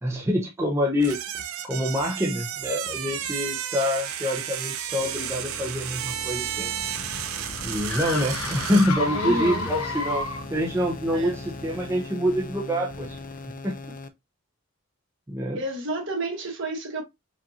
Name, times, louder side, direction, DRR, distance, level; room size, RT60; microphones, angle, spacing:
voice 1, 0.0-1.2 1.6-6.7 7.6-13.2 13.6-13.8 15.3-15.6, equal, 10° right, 0.6 m, -26 dB
sound 1, 1.0-9.0, right 10 dB, 75° right, 0.5 m, -32 dB
sound 2, 5.0-14.1, left 2 dB, 40° left, 0.5 m, -39 dB
sound 3, 6.1-10.7, left 2 dB, 80° left, 1.0 m, -32 dB
voice 2, 9.1-9.7 11.1-11.4 15.5-17.0, right 1 dB, 60° right, 1.5 m, -30 dB
5.0 x 2.5 x 2.7 m
head